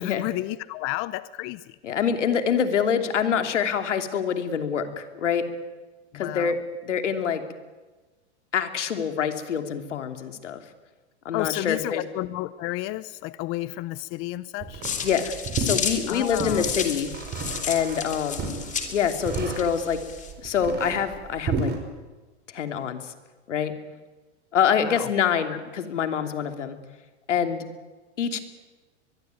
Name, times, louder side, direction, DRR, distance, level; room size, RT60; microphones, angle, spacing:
voice 1, 0.0-1.8 6.1-6.5 11.3-14.8 16.1-16.7 24.8-25.1, left 18 dB, 35° left, 17 dB, 0.8 m, -31 dB
voice 2, 1.8-5.5 6.1-7.4 8.5-10.6 11.2-12.0 15.0-17.1 17.7-20.0 20.4-21.7 22.5-23.1 23.5-23.7 24.5-26.8 27.3-27.6 28.2-28.4, left 7 dB, 85° left, 7 dB, 3.0 m, -26 dB
sound 1, 14.6-21.8, right 4 dB, 30° right, 5.8 m, -33 dB
sound 2, 14.8-20.3, left 7 dB, 20° left, 3.4 m, -33 dB
22.5 x 22.0 x 9.4 m, 1.2 s
hypercardioid pair, 125°, 35 cm